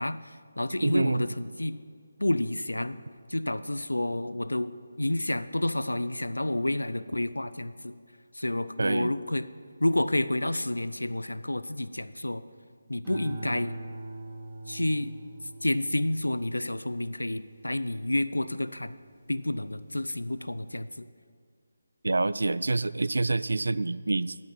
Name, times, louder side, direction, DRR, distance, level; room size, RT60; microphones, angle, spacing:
voice 1, 0.0-1.8 2.2-3.0 3.3-4.7 5.0-8.0 8.3-9.5 9.8-12.4 12.9-13.8 14.7-15.1 15.6-18.9 19.3-21.1, left 1 dB, 90° left, 14 dB, 0.5 m, -29 dB
voice 2, 0.8-1.2 8.8-9.1 22.0-24.4, right 3 dB, 70° right, 18 dB, 0.3 m, -26 dB
sound 1, 13.0-19.6 20.0-20.5, right 2 dB, 10° right, 2.8 m, -44 dB
9.6 x 9.2 x 5.4 m, 2.1 s
figure-of-eight pair, 155°, 0 cm